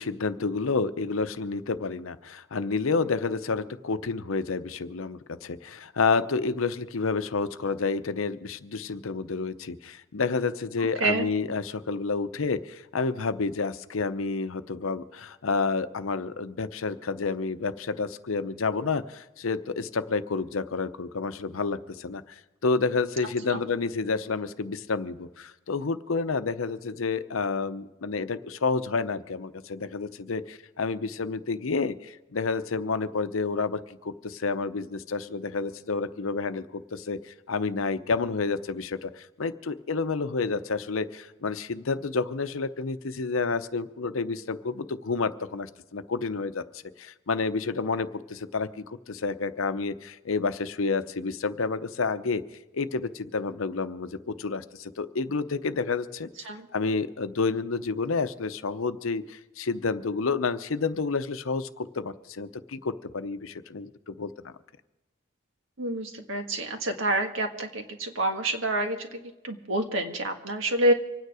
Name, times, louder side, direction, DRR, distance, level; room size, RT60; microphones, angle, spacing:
voice 1, 0.0-22.2 22.6-46.6 47.0-52.4 52.7-56.3 56.7-64.5, left 4 dB, 85° left, 12 dB, 0.7 m, -29 dB
voice 2, 65.8-70.9, right 1 dB, 75° right, 5 dB, 1.6 m, -28 dB
25.5 x 9.4 x 4.9 m, 1.0 s
head